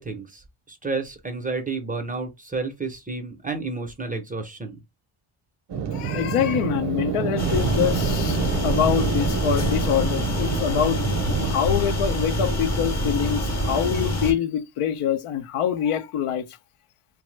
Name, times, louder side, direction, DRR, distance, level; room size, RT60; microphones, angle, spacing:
voice 1, 0.0-4.8, right 3 dB, 15° right, 0.5 m, -31 dB
sound 1, 5.7-11.5, right 7 dB, 55° right, 0.6 m, -28 dB
voice 2, 5.9-8.4 8.6-11.0 11.4-16.4, left 9 dB, 85° left, 0.6 m, -25 dB
sound 2, 7.4-14.3, equal, 35° left, 0.7 m, -25 dB
3.1 x 2.0 x 3.1 m
wide cardioid pair, 130°, 50 cm